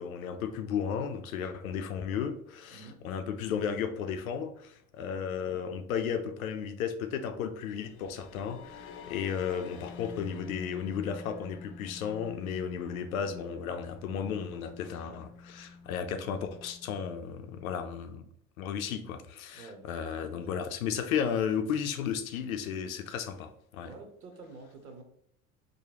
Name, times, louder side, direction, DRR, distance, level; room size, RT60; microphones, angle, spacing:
voice 1, 0.0-18.3 18.6-23.9, left 7 dB, 75° left, 0.6 m, -34 dB
voice 2, 2.7-3.0 5.3-5.6 15.0-15.2 19.5-19.9 20.3-20.6 23.8-25.0, right 3 dB, 85° right, 0.8 m, -49 dB
sound 1, 7.5-18.2, left 5 dB, 30° left, 0.4 m, -49 dB
4.9 x 2.1 x 2.9 m
figure-of-eight pair, 70°, 42 cm